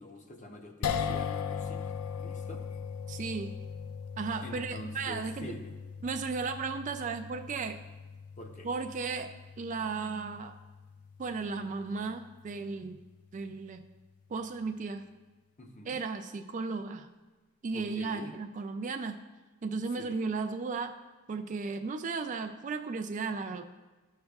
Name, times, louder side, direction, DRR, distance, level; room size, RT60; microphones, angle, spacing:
voice 1, 0.0-1.9 2.2-2.6 4.4-5.7 8.4-8.7 15.6-16.0 17.7-18.3 20.0-20.2, equal, 35° left, 3 dB, 0.8 m, -45 dB
sound 1, 0.8-13.1, left 7 dB, 85° left, 0.4 m, -39 dB
voice 2, 3.1-3.5 4.2-5.5 6.0-7.8 8.6-10.5 11.2-13.0 13.3-13.8 14.3-15.0 15.9-17.1 17.6-19.2 19.6-21.0 21.3-23.6, right 4 dB, 35° right, 7 dB, 0.3 m, -35 dB
12.5 x 6.5 x 2.3 m, 1.2 s
head